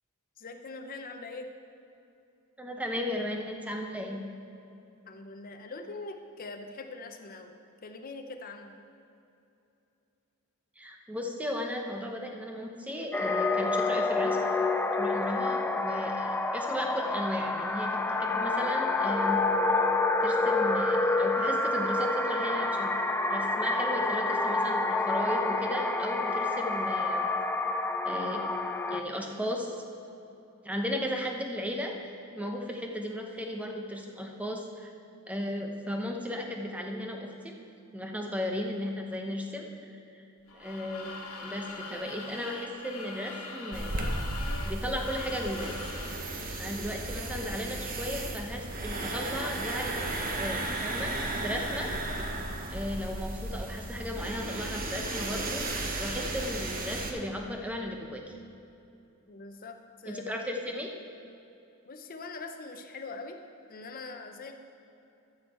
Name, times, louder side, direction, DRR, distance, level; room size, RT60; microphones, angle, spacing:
voice 1, 0.4-1.5 5.1-7.5 7.8-8.7 59.3-60.2 61.9-63.4 63.7-64.5, left 3 dB, 40° left, 5 dB, 0.7 m, -42 dB
voice 2, 2.6-4.2 10.8-14.4 15.0-19.4 20.2-22.9 23.3-27.3 28.0-28.4 28.9-29.8 30.6-34.9 35.3-37.5 37.9-40.2 40.5-41.1 41.4-44.0 44.6-45.8 46.6-50.1 50.4-51.9 52.7-58.2 60.1-60.9, left 1 dB, 5° right, 2 dB, 0.8 m, -35 dB
sound 1, 13.1-29.0, left 3 dB, 10° left, 0.3 m, -28 dB
sound 2, 40.5-46.2, left 3 dB, 85° left, 1.5 m, -42 dB
sound 3, 43.7-57.1, right 2 dB, 40° right, 1.0 m, -34 dB
13.5 x 6.4 x 4.3 m, 2.8 s
head